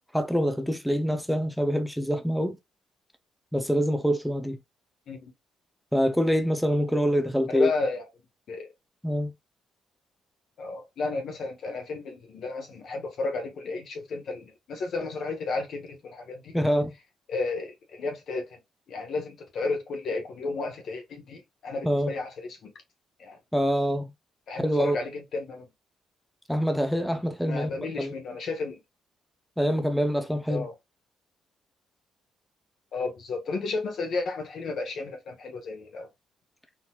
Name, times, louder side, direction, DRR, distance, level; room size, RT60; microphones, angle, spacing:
voice 1, 0.1-2.6 3.5-4.6 5.9-7.7 9.0-9.3 16.5-16.9 21.8-22.1 23.5-24.1 24.5-25.0 26.5-28.1 29.6-30.7, equal, ahead, 0.5 m, -25 dB
voice 2, 7.5-8.0 8.5-8.7 10.6-16.6 17.3-18.6 18.9-22.7 23.2-23.4 24.5-25.7 27.4-28.8 30.5-30.7 32.9-36.1, left 3 dB, 65° left, 1.1 m, -33 dB
3.8 x 2.8 x 2.3 m
cardioid pair, 90°, 0 cm